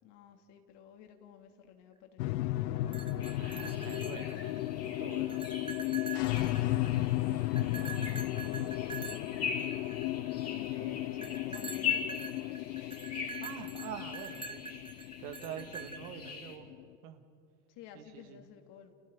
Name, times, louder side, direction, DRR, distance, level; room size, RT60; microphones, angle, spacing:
voice 1, 0.0-2.5 6.5-9.6 10.5-12.7 17.7-18.9, left 8 dB, 55° left, 5 dB, 2.7 m, -54 dB
sound 1, 2.2-16.8, left 16 dB, 75° left, 0.8 m, -35 dB
sound 2, 2.8-4.7 5.1-7.1 7.6-10.3 11.2-16.3, right 5 dB, 10° right, 1.0 m, -45 dB
sound 3, 3.2-16.6, left 6 dB, 30° left, 4.0 m, -42 dB
voice 2, 3.4-5.5 10.8-11.1 13.4-14.6 15.2-16.7 17.0-17.2 17.9-18.4, right 10 dB, 70° right, 7 dB, 2.2 m, -46 dB
29.5 x 29.0 x 3.9 m, 2.5 s
hypercardioid pair, 95°, 49 cm